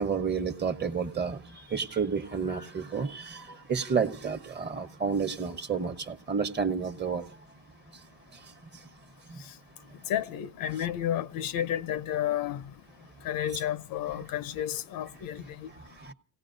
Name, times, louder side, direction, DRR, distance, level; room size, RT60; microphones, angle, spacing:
voice 1, 0.0-7.4 8.3-8.8 9.3-9.4 15.7-16.1, right 6 dB, 30° right, 1.0 m, -31 dB
voice 2, 10.1-12.6 13.2-15.7, left 11 dB, 70° left, 0.7 m, -31 dB
29.5 x 17.5 x 2.6 m
cardioid pair, 95°, 37 cm